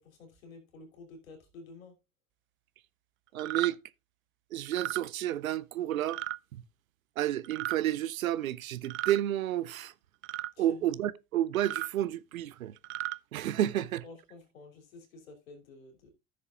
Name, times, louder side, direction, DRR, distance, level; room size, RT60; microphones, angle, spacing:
voice 1, 0.0-2.0 10.6-10.9 13.8-16.1, left 3 dB, 80° left, 3.1 m, -51 dB
voice 2, 3.3-3.8 4.5-6.2 7.2-9.9 10.6-12.7 13.3-14.0, right 12 dB, 80° right, 0.7 m, -31 dB
sound 1, 3.4-3.7 4.7-5.0 6.1-6.4 7.4-7.8 8.8-9.2 10.2-10.5 11.5-11.9 12.8-13.2, right 17 dB, 30° right, 0.4 m, -35 dB
14.5 x 6.6 x 2.4 m
figure-of-eight pair, 70°, 40 cm